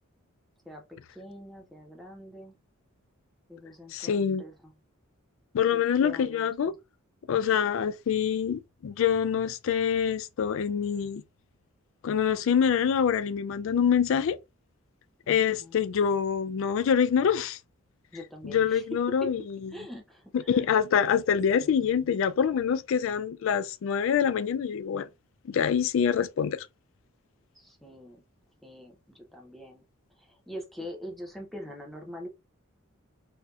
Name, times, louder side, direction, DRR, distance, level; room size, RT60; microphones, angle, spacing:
voice 1, 0.7-2.6 3.5-4.7 5.7-6.7 15.2-15.3 15.6-15.8 18.1-19.3 19.7-20.7 21.6-21.8 27.5-28.2 28.6-29.8 30.2-32.3, left 1 dB, ahead, 0.6 m, -43 dB
voice 2, 3.9-4.4 5.5-6.7 7.3-11.2 12.0-14.4 15.3-17.6 18.4-19.6 20.3-25.1 25.4-26.7, left 7 dB, 60° left, 0.3 m, -25 dB
4.2 x 2.7 x 2.4 m
head